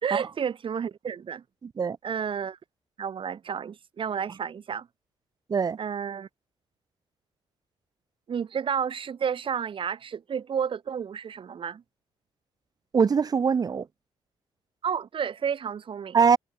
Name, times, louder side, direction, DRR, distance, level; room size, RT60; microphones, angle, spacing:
voice 1, 0.0-1.4 2.0-2.6 3.0-4.9 5.8-6.3 8.3-11.8 14.8-16.2, right 7 dB, 50° right, 3.2 m, -31 dB
voice 2, 1.6-2.0 5.5-5.8 12.9-13.9 16.1-16.4, right 6 dB, 35° right, 0.7 m, -22 dB
cardioid pair, 75°, 11 cm